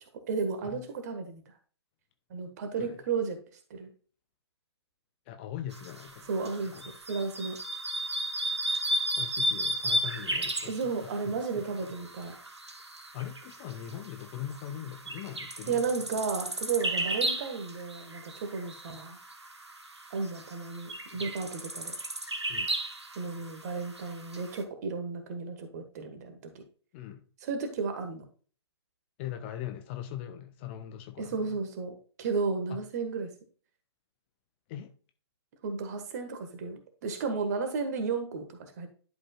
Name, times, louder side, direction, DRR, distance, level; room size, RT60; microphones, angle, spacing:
voice 1, 0.3-1.4 2.3-3.4 3.7-3.9 6.3-6.7 7.1-7.5 10.7-12.3 15.7-19.2 20.1-22.0 23.1-26.5 27.4-28.2 31.2-33.3 35.6-38.9, right 4 dB, 40° right, 7 dB, 1.5 m, -33 dB
voice 2, 5.3-6.3 6.7-6.9 9.2-11.9 13.1-15.9 21.1-21.2 22.5-22.7 26.9-27.3 29.2-31.6 32.7-32.8 34.7-34.9, left 11 dB, 25° left, 8 dB, 0.5 m, -41 dB
sound 1, 5.7-24.6, right 1 dB, 80° right, 1.2 m, -35 dB
11.0 x 5.1 x 2.3 m, 0.41 s
figure-of-eight pair, 130°, 14 cm